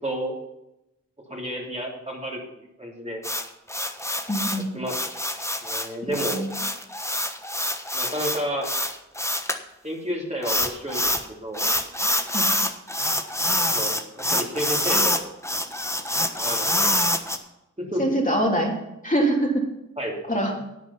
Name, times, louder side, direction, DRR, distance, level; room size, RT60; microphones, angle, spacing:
voice 1, 0.0-0.3 1.3-2.4 2.8-3.2 4.7-5.0 5.6-6.4 7.9-8.7 9.8-11.7 13.7-13.9 14.3-15.2 16.4-16.9 17.8-18.0 20.0-20.2, equal, 20° right, -2 dB, 3.3 m, -30 dB
sound 1, 3.2-9.6 10.4-11.3 11.5-17.4, left 1 dB, 10° left, 1.2 m, -25 dB
voice 2, 4.3-4.7 6.0-6.5 12.3-12.5 18.0-18.7 19.0-19.6 20.3-20.5, right 1 dB, 25° left, -1 dB, 3.0 m, -24 dB
11.0 x 8.7 x 5.7 m, 0.88 s
wide cardioid pair, 45°, 30 cm